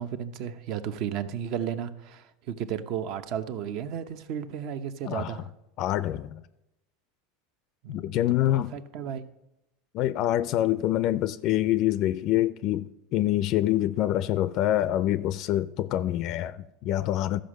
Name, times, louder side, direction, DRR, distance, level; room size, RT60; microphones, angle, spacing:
voice 1, 0.0-5.5 7.8-8.2 8.5-9.2, right 9 dB, 55° right, 0.7 m, -34 dB
voice 2, 5.0-5.4 5.8-6.4 7.9-8.7 9.9-17.4, left 13 dB, 50° left, 0.4 m, -26 dB
13.0 x 5.1 x 6.4 m
supercardioid pair, 130°, 0 cm